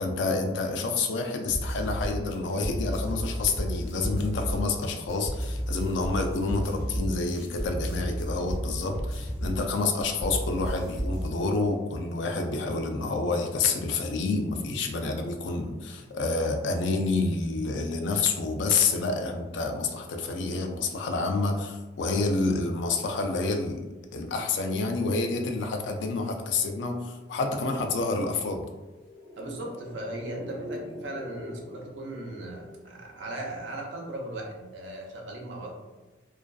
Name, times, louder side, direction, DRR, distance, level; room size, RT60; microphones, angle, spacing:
voice 1, 0.0-28.6, left 3 dB, 75° left, 4 dB, 0.3 m, -28 dB
sound 1, 1.5-11.3, equal, 15° left, 0.7 m, -33 dB
sound 2, 29.0-33.6 33.8-33.9, left 1 dB, 60° left, 0.9 m, -43 dB
voice 2, 29.4-35.7, right 1 dB, 80° right, 0 dB, 0.5 m, -38 dB
2.4 x 2.3 x 2.2 m, 1.1 s
head